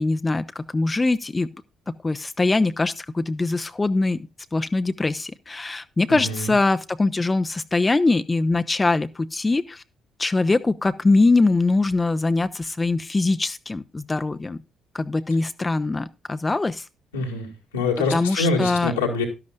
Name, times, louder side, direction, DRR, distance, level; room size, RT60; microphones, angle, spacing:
voice 1, 0.0-1.5 1.9-9.8 10.2-14.6 14.9-16.9 18.1-18.9, left 3 dB, 25° left, 0.6 m, -22 dB
voice 2, 6.1-6.5 17.1-17.5 17.7-19.2, left 3 dB, 90° left, 2.1 m, -25 dB
11.5 x 11.5 x 2.5 m
hypercardioid pair, 45°, 0 cm